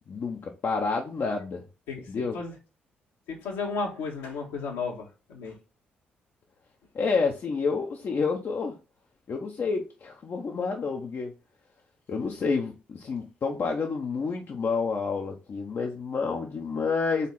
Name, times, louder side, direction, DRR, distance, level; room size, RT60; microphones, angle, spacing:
voice 1, 0.1-1.6 2.1-2.4 6.9-8.7 9.3-11.3 12.1-17.3, left 4 dB, 45° left, 0.9 m, -29 dB
voice 2, 3.3-5.6, left 4 dB, 70° left, 1.6 m, -33 dB
4.2 x 4.1 x 5.5 m
figure-of-eight pair, 40°, 5 cm